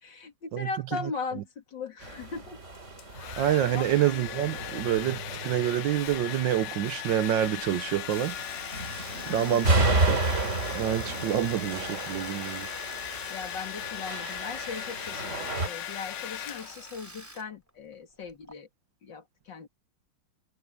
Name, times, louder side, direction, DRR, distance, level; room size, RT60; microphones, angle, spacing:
voice 1, 0.0-2.6 3.3-4.1 9.2-9.9 12.8-18.7 19.0-19.7, left 5 dB, 60° left, 3.0 m, -39 dB
sound 1, 2.0-15.7, right 2 dB, 35° right, 3.5 m, -32 dB
Domestic sounds home sounds, 2.7-17.0, left 13 dB, 85° left, 1.7 m, -39 dB
voice 2, 3.4-12.7, right 11 dB, 70° right, 1.4 m, -28 dB
Domestic sounds home sounds 2, 8.1-17.4 17.7-18.5, right 1 dB, 10° right, 2.8 m, -45 dB
omnidirectional pair, 2.3 m